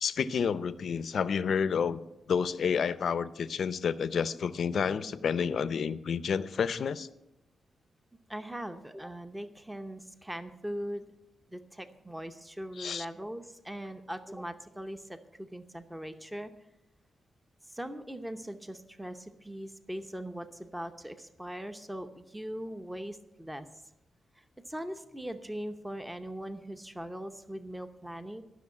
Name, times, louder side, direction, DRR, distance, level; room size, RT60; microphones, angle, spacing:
voice 1, 0.0-2.0 2.3-7.1 12.8-13.1, left 6 dB, 65° left, 15 dB, 0.6 m, -30 dB
voice 2, 8.3-11.1 11.5-16.5 17.6-23.7 24.3-28.4, equal, 10° right, 8 dB, 0.8 m, -40 dB
13.0 x 6.3 x 8.5 m, 0.91 s
cardioid pair, 100°, 0 cm